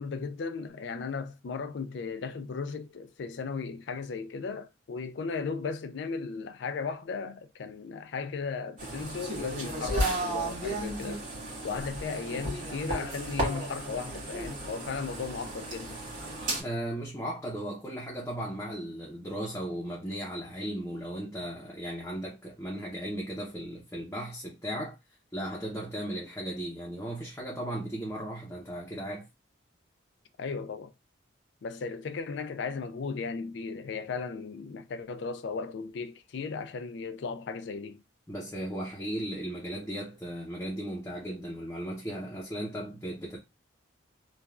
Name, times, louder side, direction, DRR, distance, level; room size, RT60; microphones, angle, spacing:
voice 1, 0.0-11.2 11.6-16.0 30.4-30.9 31.6-38.0, left 5 dB, 60° left, 0.4 m, -36 dB
sound 1, 8.8-16.6, right 1 dB, 40° right, 1.6 m, -34 dB
voice 2, 16.6-25.0 25.3-29.2 38.3-43.4, right 1 dB, 15° left, 0.6 m, -36 dB
3.1 x 2.3 x 2.3 m
head